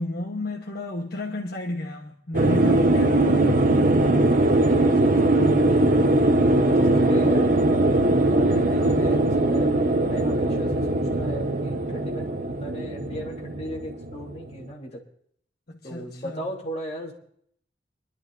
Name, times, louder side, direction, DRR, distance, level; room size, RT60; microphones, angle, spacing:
voice 1, 0.0-3.3 6.9-7.3 8.8-9.0 15.7-16.5, left 1 dB, 60° left, 1.3 m, -32 dB
sound 1, 2.3-14.6, right 2 dB, 50° right, 1.1 m, -21 dB
voice 2, 4.5-5.4 6.5-7.7 8.1-15.0 15.8-17.1, equal, 35° left, 3.4 m, -37 dB
26.0 x 12.0 x 2.7 m
head